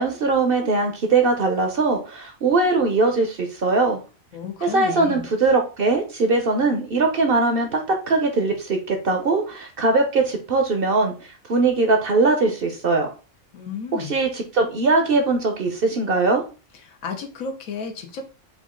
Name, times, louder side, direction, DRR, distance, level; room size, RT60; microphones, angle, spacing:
voice 1, 0.0-4.0 4.6-11.1 11.5-13.1 13.9-16.4, right 3 dB, 55° right, 4 dB, 0.8 m, -21 dB
voice 2, 4.3-5.3 13.5-14.2 16.8-18.3, left 5 dB, 80° left, 5 dB, 1.2 m, -33 dB
5.1 x 2.4 x 3.6 m, 0.34 s
omnidirectional pair, 1.4 m